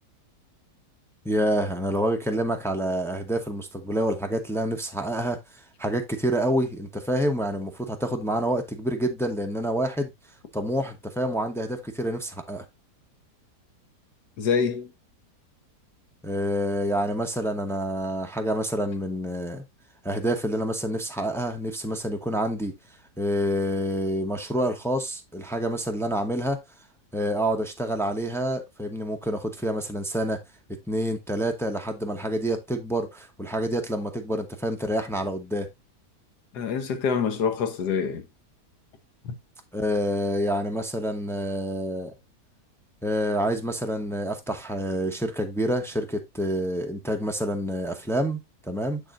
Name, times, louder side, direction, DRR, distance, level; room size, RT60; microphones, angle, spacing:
voice 1, 1.2-10.1 10.5-12.6 16.2-19.6 20.0-22.7 23.2-26.6 27.1-30.4 30.9-35.7 39.7-42.1 43.0-49.0, equal, 5° left, 0.5 m, -27 dB
voice 2, 14.4-14.9 36.5-38.3 39.2-39.3, left 6 dB, 75° left, 1.6 m, -26 dB
7.0 x 6.9 x 2.5 m
omnidirectional pair, 1.8 m